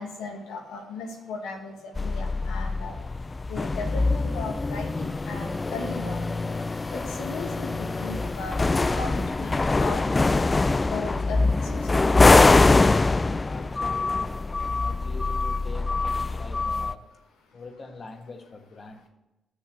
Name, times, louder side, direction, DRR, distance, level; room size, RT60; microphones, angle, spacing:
voice 1, 0.0-13.5 17.5-17.6, left 3 dB, 85° left, 2 dB, 1.5 m, -38 dB
sound 1, 2.0-16.9, left 3 dB, 30° left, 0.3 m, -23 dB
voice 2, 13.4-17.1 17.5-19.1, left 3 dB, 50° left, 5 dB, 1.4 m, -43 dB
6.5 x 6.3 x 7.5 m, 0.99 s
supercardioid pair, 55°, 0 cm